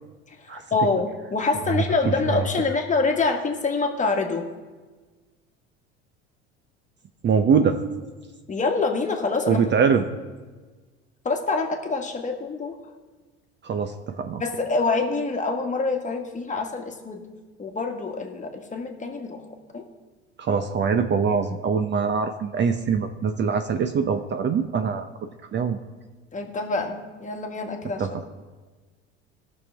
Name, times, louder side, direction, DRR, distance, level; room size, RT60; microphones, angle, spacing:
voice 1, 0.3-4.4 8.5-9.7 11.3-12.8 14.4-17.2 17.6-19.4 19.7-19.8 26.3-28.2, left 3 dB, 20° left, 3 dB, 1.6 m, -26 dB
voice 2, 7.2-7.8 9.5-10.0 13.6-14.4 20.4-25.1 25.5-25.8 28.0-28.1, right 6 dB, 35° right, 7 dB, 0.7 m, -23 dB
18.0 x 6.3 x 3.4 m, 1.4 s
hypercardioid pair, 70°, 33 cm